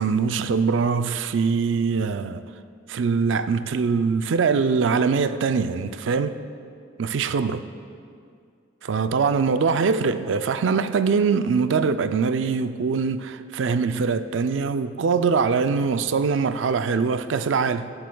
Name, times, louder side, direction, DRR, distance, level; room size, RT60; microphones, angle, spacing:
voice 1, 0.0-2.4 2.9-6.4 7.0-7.7 8.8-17.9, right 5 dB, 90° right, 0.4 m, -23 dB
21.0 x 7.8 x 2.3 m
head